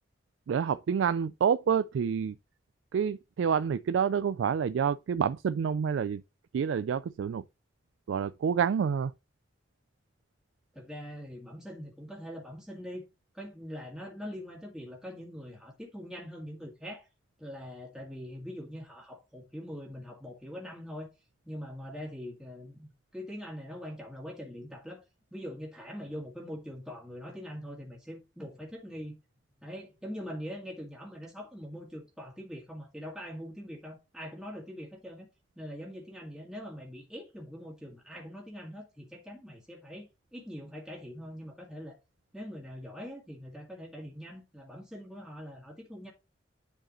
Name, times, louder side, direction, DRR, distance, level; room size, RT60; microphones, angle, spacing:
voice 1, 0.5-2.3 2.9-6.2 6.5-7.4 8.1-9.1, right 7 dB, 80° right, 0.3 m, -28 dB
voice 2, 10.7-13.0 13.3-17.1 17.4-21.1 21.4-25.0 25.3-29.2 29.6-35.3 35.6-42.0 42.3-46.1, equal, 5° right, 2.0 m, -43 dB
10.0 x 4.9 x 3.0 m
head